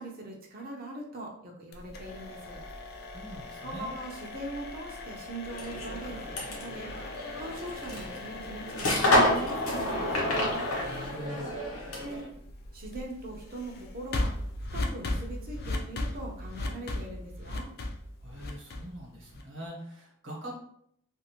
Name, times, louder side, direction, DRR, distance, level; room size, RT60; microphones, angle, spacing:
voice 1, 0.0-2.6 3.6-6.9 7.3-10.5 11.8-12.2 12.7-14.3 14.7-17.7, right 1 dB, 45° right, 0 dB, 0.7 m, -41 dB
sound 1, 1.7-19.6, left 2 dB, 50° left, 0.4 m, -38 dB
voice 2, 3.1-3.9 10.9-11.5 18.2-20.5, equal, 65° right, -3 dB, 1.1 m, -42 dB
sound 2, 5.5-12.3, left 1 dB, 90° left, 0.9 m, -29 dB
2.5 x 2.5 x 2.9 m, 0.69 s
head